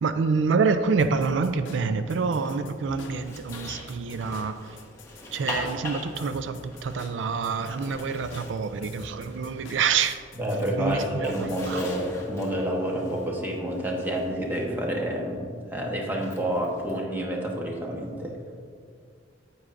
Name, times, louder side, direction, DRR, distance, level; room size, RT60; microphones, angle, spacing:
voice 1, 0.0-4.8 5.3-10.2 10.8-11.8, right 5 dB, 80° right, 10 dB, 0.4 m, -27 dB
sound 1, 1.0-11.7, left 3 dB, 85° left, 0.6 m, -46 dB
Zipper (clothing), 2.1-10.0 10.3-14.7 16.1-16.9, left 1 dB, 15° left, 1.2 m, -41 dB
voice 2, 10.4-18.4, equal, 10° right, -1 dB, 1.1 m, -29 dB
9.5 x 8.5 x 2.5 m, 2.2 s
head